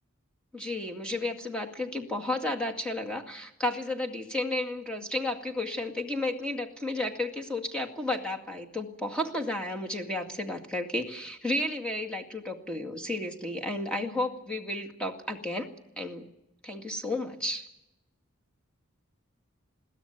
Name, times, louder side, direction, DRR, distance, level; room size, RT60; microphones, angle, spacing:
voice 1, 0.5-15.7 16.0-16.3 16.6-17.7, left 1 dB, 5° left, 2 dB, 2.1 m, -32 dB
22.0 x 16.0 x 9.2 m, 0.88 s
head